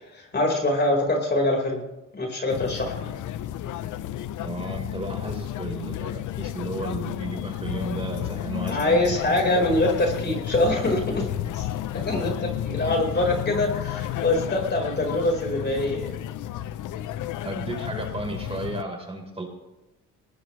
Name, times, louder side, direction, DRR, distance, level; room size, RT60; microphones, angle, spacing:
voice 1, 0.1-1.8 2.1-3.1 8.7-11.7 12.0-16.1, left 1 dB, 35° left, 1 dB, 4.7 m, -24 dB
sound 1, 2.5-18.8, left 12 dB, 80° left, 0.8 m, -32 dB
voice 2, 4.4-9.4 12.9-13.0 17.4-19.4, right 2 dB, 20° right, 1 dB, 4.3 m, -34 dB
22.0 x 19.5 x 3.3 m, 1.0 s
cardioid pair, 90°, 30 cm